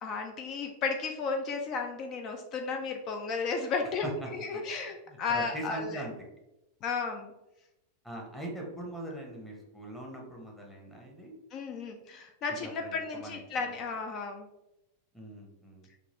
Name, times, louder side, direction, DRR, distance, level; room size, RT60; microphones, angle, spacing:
voice 1, 0.0-6.0 6.8-7.3 11.5-14.5, left 4 dB, 35° left, 4 dB, 0.3 m, -34 dB
voice 2, 5.1-6.1 8.0-11.3 12.6-13.8 15.1-15.9, right 1 dB, 5° left, -1 dB, 0.8 m, -41 dB
3.8 x 2.3 x 2.9 m, 0.92 s
figure-of-eight pair, 90°, 0 cm